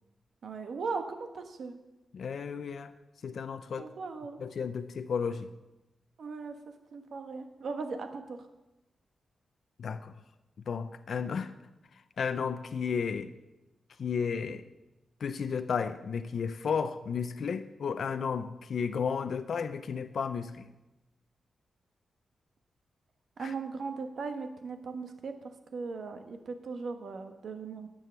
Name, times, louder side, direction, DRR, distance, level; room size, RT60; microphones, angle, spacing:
voice 1, 0.4-1.8 3.8-4.4 6.2-6.5 6.9-8.4 23.4-25.3 25.7-27.9, right 4 dB, 60° right, 6 dB, 1.2 m, -38 dB
voice 2, 2.1-2.9 3.2-3.9 4.4-5.5 9.8-10.1 10.7-11.5 12.2-13.3 14.0-14.6 15.2-20.7 23.4-23.5, left 6 dB, 60° left, 9 dB, 0.6 m, -33 dB
11.0 x 7.7 x 6.8 m, 0.99 s
wide cardioid pair, 165°, 0 cm